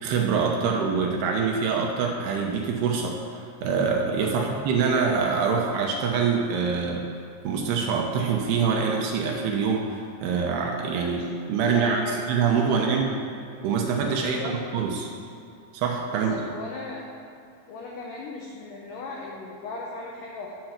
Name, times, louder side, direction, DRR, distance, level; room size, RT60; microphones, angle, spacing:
voice 1, 0.0-7.0 7.4-11.2 11.5-12.0 12.3-13.1 13.6-15.1 15.7-16.3, right 5 dB, 75° right, 1 dB, 2.6 m, -25 dB
voice 2, 11.6-12.2 12.6-12.8 14.2-14.6 16.1-17.1 17.7-20.5, left 3 dB, 90° left, -2 dB, 1.9 m, -37 dB
9.1 x 7.8 x 5.9 m, 2.5 s
omnidirectional pair, 5.3 m